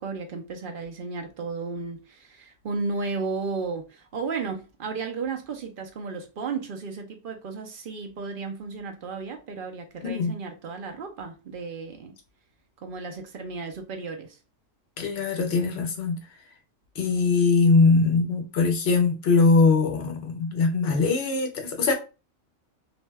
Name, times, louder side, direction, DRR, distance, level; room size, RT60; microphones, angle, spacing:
voice 1, 0.0-12.2 12.8-14.4, right 4 dB, 60° right, 0.5 m, -34 dB
voice 2, 15.0-16.2 17.0-22.0, left 4 dB, 60° left, 0.8 m, -21 dB
2.6 x 2.1 x 3.2 m
omnidirectional pair, 1.4 m